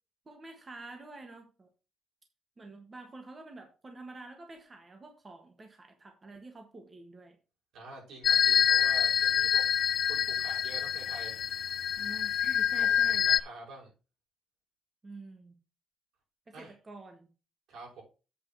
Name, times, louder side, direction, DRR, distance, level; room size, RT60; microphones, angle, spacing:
voice 1, 0.3-1.7 2.6-7.4 12.0-13.3 15.0-15.5 16.5-17.3, right 2 dB, 25° right, 4 dB, 1.4 m, -48 dB
voice 2, 7.7-9.6 10.0-11.4 12.8-13.9 16.5-16.7 17.7-18.0, right 2 dB, 80° right, -2 dB, 5.9 m, -47 dB
sound 1, 8.2-13.4, left 9 dB, 55° left, 0.4 m, -26 dB
8.1 x 4.9 x 6.1 m, 0.33 s
cardioid pair, 155°, 0 cm